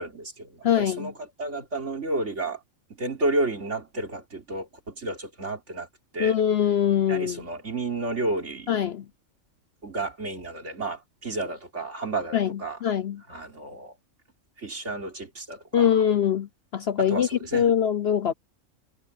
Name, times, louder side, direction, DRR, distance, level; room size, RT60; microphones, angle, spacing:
voice 1, 0.0-2.6 3.0-5.9 6.1-6.4 7.1-8.7 9.8-12.8 13.3-13.9 14.6-15.9 17.0-17.7, right 2 dB, 60° right, 3.9 m, -31 dB
voice 2, 0.6-1.1 6.2-7.4 8.7-9.0 12.3-13.2 15.7-18.3, left 9 dB, 55° left, 0.8 m, -23 dB
omnidirectional pair, 1.4 m